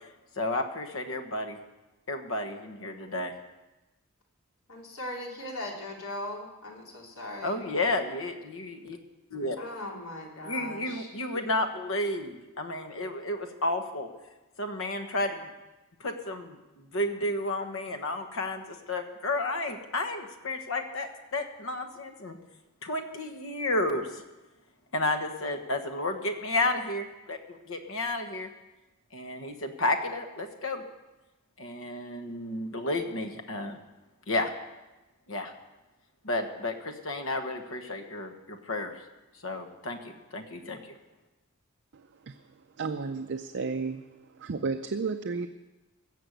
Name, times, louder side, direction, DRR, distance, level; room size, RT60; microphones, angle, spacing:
voice 1, 0.4-1.6 2.1-3.3 7.4-9.0 9.3-9.6 10.4-14.1 14.6-15.5 16.0-22.4 22.8-24.2 24.9-28.5 29.1-30.8 31.6-33.8 34.3-34.5 35.3-35.5 36.2-38.9 39.4-40.9, left 2 dB, 70° left, 6 dB, 1.4 m, -32 dB
voice 2, 4.7-7.6 9.6-11.1, left 1 dB, 90° left, -1 dB, 3.2 m, -39 dB
voice 3, 41.9-42.4 42.8-44.1 44.4-45.5, right 4 dB, 55° right, 7 dB, 0.5 m, -32 dB
16.5 x 6.9 x 7.9 m, 1.1 s
head